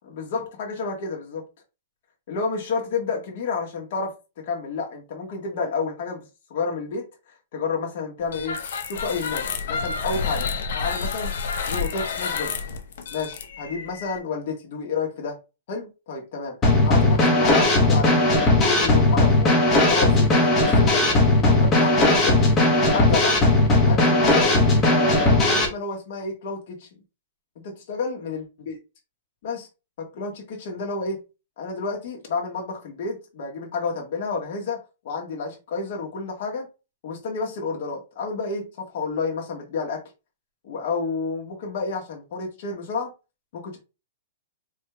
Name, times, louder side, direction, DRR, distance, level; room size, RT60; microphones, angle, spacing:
voice 1, 0.1-1.4 2.3-6.2 6.5-7.1 7.5-8.6 8.9-11.3 11.7-12.6 13.1-15.4 15.7-16.6 16.8-19.5 19.9-22.4 22.9-23.4 23.9-27.0 27.5-28.8 29.4-29.7 30.0-31.2 31.6-36.7 37.0-40.0 40.6-43.1 43.5-43.8, left 4 dB, 55° left, 1.5 m, -30 dB
sound 1, 8.3-14.2, left 5 dB, 75° left, 0.8 m, -29 dB
Drum kit / Snare drum, 16.6-25.7, left 2 dB, 20° left, 1.1 m, -18 dB
4.9 x 3.1 x 2.3 m
hypercardioid pair, 150°, 0 cm